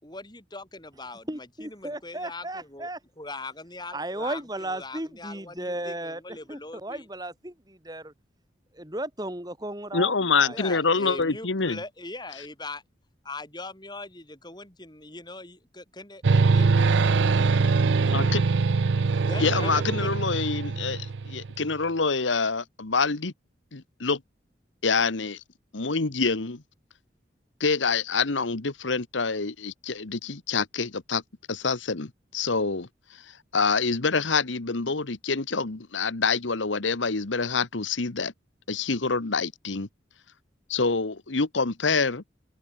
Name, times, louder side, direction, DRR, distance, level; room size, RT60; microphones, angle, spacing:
voice 1, 0.0-2.9 3.2-4.4 4.7-7.0 10.5-12.8 13.2-17.4 18.0-18.4 19.2-20.1 21.3-21.4, left 2 dB, 25° left, 5.8 m, -41 dB
voice 2, 1.3-3.0 3.9-8.1 8.7-10.8, right 1 dB, 20° right, 3.9 m, -35 dB
voice 3, 9.9-11.8 18.1-18.4 19.4-23.3 23.7-24.2 24.8-25.4 25.7-26.6 27.6-31.2 31.5-38.3 38.7-39.9 40.7-42.2, left 4 dB, 90° left, 1.4 m, -26 dB
sound 1, 16.2-21.7, right 4 dB, 80° right, 0.5 m, -23 dB
head